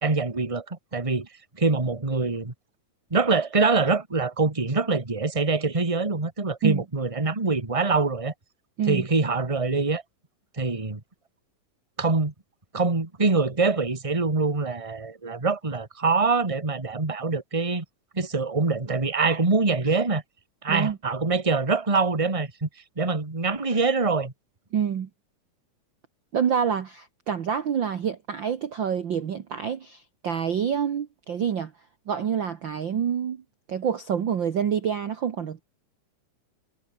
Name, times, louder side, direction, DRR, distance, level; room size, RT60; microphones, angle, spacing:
voice 1, 0.0-1.3 1.5-2.5 3.1-8.3 8.9-10.0 10.5-11.0 12.0-12.3 12.7-17.8 18.1-20.2 20.6-22.7 23.0-24.3, right 4 dB, 10° right, 2.0 m, -24 dB
voice 2, 24.7-25.1 26.3-31.7 32.1-33.4 33.7-35.6, right 8 dB, 50° right, 1.7 m, -27 dB
omnidirectional pair, 3.4 m